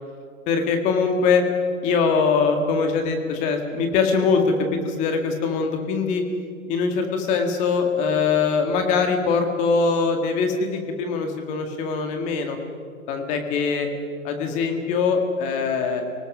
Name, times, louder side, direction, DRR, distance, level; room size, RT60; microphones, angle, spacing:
voice 1, 0.5-1.5 1.8-6.2 6.7-12.6 13.1-13.9 14.2-16.0, left 5 dB, 15° left, 5 dB, 1.8 m, -22 dB
29.5 x 19.0 x 6.1 m, 2.2 s
hypercardioid pair, 155°, 42 cm